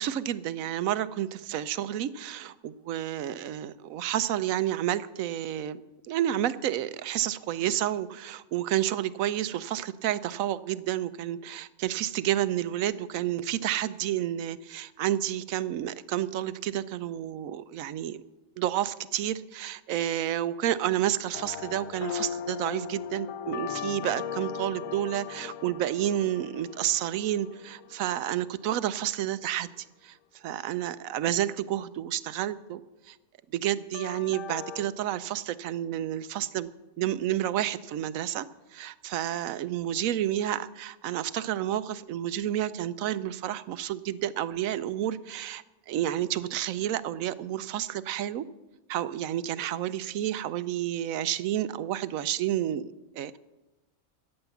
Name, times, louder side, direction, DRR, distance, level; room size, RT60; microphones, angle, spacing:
voice 1, 0.0-5.8 6.1-18.2 18.6-29.7 30.0-30.2 30.4-32.8 33.1-33.2 33.5-36.7 37.0-38.5 38.7-48.4 48.9-53.4, right 12 dB, 80° right, 15 dB, 1.0 m, -30 dB
sound 1, 21.3-28.6 33.9-34.9, left 8 dB, 75° left, 1.1 m, -38 dB
14.5 x 9.0 x 7.0 m, 1.1 s
omnidirectional pair, 1.4 m